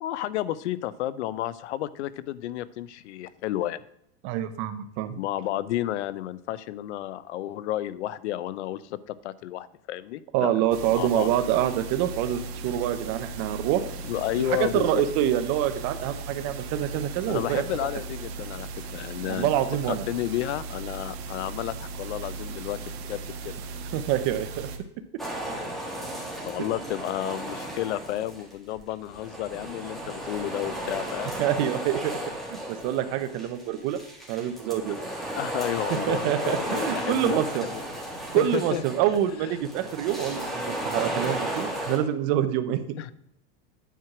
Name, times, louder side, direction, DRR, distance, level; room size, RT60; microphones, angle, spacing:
voice 1, 0.0-3.8 5.1-10.5 10.9-11.3 14.0-15.0 17.3-19.5 19.9-23.5 26.2-31.4 35.4-37.4 38.3-38.8 39.4-39.6 43.0-43.1, left 13 dB, 80° left, 17 dB, 0.7 m, -32 dB
voice 2, 4.2-5.2 10.3-13.8 14.6-17.6 19.3-20.0 23.9-24.7 26.6-26.7 31.4-32.1 32.5-34.0 34.3-35.0 36.1-37.6 38.3-42.8, right 11 dB, 45° right, 9 dB, 0.8 m, -26 dB
sound 1, 10.7-24.8, right 4 dB, 65° right, 1.4 m, -37 dB
sound 2, 25.2-28.5 28.8-42.0, right 1 dB, ahead, 1.8 m, -34 dB
9.2 x 4.7 x 5.9 m, 0.76 s
supercardioid pair, 145°, 34 cm